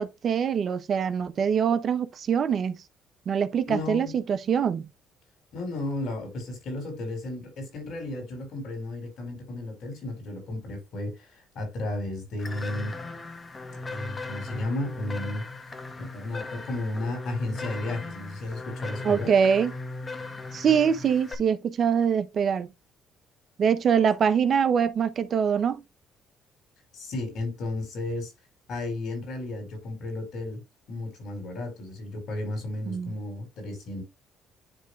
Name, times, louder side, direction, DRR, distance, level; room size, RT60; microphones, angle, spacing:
voice 1, 0.0-2.8 3.3-4.8 19.0-19.7 20.5-22.7 23.6-25.8 32.9-33.1, right 7 dB, 55° right, 1.1 m, -24 dB
voice 2, 3.7-4.2 5.5-12.9 13.9-15.4 16.0-19.3 26.9-28.3 28.7-30.6 30.9-34.0, left 2 dB, 70° left, 5.3 m, -33 dB
sound 1, 12.4-21.3, left 3 dB, 30° left, 1.7 m, -38 dB
10.5 x 3.7 x 3.4 m
supercardioid pair, 65°, 0 cm